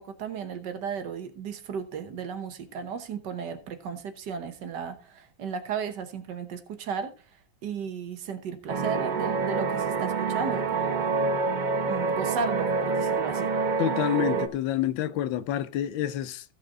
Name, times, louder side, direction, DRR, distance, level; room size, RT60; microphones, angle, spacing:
voice 1, 0.0-7.1 7.6-11.2 11.9-13.5, right 6 dB, 65° right, 1.6 m, -35 dB
sound 1, 8.7-14.5, right 4 dB, 50° right, 0.5 m, -27 dB
voice 2, 13.8-16.4, left 11 dB, 90° left, 1.5 m, -28 dB
15.0 x 5.6 x 3.6 m
omnidirectional pair, 2.1 m